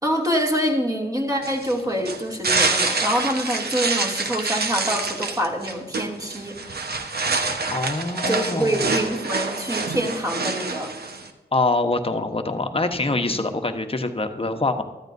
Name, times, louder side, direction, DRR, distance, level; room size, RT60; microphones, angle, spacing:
voice 1, 0.0-6.6 8.3-10.9 13.3-13.4, equal, 20° right, 0 dB, 2.7 m, -25 dB
sound 1, 1.4-11.3, right 3 dB, 60° right, 1.2 m, -26 dB
voice 2, 7.7-8.8 11.5-14.8, left 2 dB, 30° left, 6 dB, 1.2 m, -24 dB
14.0 x 12.5 x 2.7 m, 1.2 s
cardioid pair, 45°, 18 cm